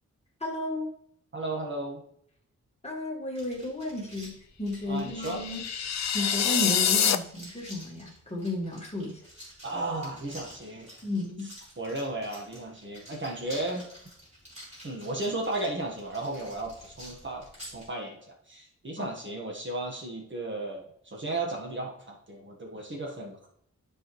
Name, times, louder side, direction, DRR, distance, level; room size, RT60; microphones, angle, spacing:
voice 1, 0.4-0.9 2.8-5.6 6.1-9.2 11.0-11.5 19.0-19.1, left 2 dB, 20° left, 0 dB, 1.6 m, -33 dB
voice 2, 1.3-2.0 4.9-5.4 9.6-11.0 11.8-13.9 14.8-17.5 17.7-23.5, right 2 dB, 40° right, 0 dB, 1.4 m, -34 dB
sound 1, 3.4-17.9, equal, 25° right, 3.6 m, -49 dB
sound 2, 5.1-7.2, left 8 dB, 65° left, 0.5 m, -26 dB
12.5 x 4.9 x 3.1 m, 0.68 s
wide cardioid pair, 135°, 29 cm